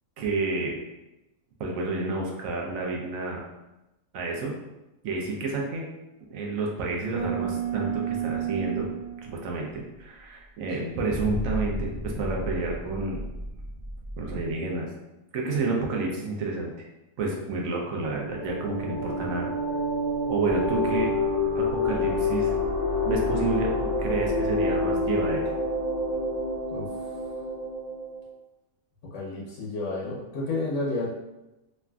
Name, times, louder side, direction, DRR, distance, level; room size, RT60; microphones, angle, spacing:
voice 1, 0.2-0.8 1.6-3.4 4.1-4.5 5.0-5.9 6.3-8.9 9.2-13.2 14.2-14.9 15.3-16.9 17.2-19.5 20.3-21.1 21.5-22.5 23.0-25.4, right 3 dB, 70° right, -1 dB, 1.0 m, -30 dB
sound 1, 7.1-9.7 11.1-14.5, right 4 dB, 40° right, 0.4 m, -32 dB
sound 2, 18.0-28.2, left 2 dB, 30° left, 0.3 m, -28 dB
voice 2, 26.7-27.1 29.1-31.1, left 2 dB, 65° left, -5 dB, 0.9 m, -31 dB
3.2 x 2.5 x 2.2 m, 0.99 s
omnidirectional pair, 1.5 m